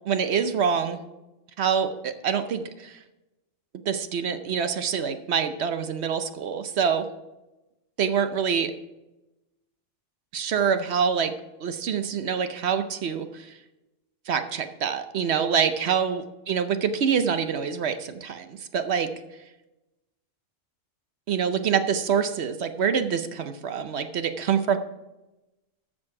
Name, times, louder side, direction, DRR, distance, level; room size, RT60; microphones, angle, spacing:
voice 1, 0.1-1.0 1.6-3.0 3.9-7.1 8.0-8.7 10.3-11.3 11.6-13.5 14.3-19.1 21.3-24.8, right 7 dB, 60° right, 9 dB, 0.9 m, -26 dB
14.0 x 5.3 x 4.8 m, 0.99 s
omnidirectional pair, 1.3 m